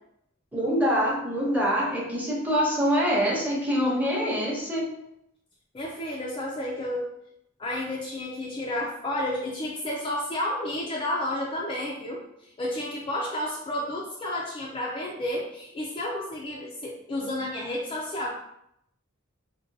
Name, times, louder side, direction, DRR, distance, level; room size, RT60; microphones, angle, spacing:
voice 1, 0.5-4.8, equal, 10° right, -4 dB, 0.7 m, -25 dB
voice 2, 5.7-7.1 7.6-18.3, left 1 dB, 25° left, -2 dB, 0.3 m, -31 dB
3.5 x 2.2 x 2.6 m, 0.78 s
head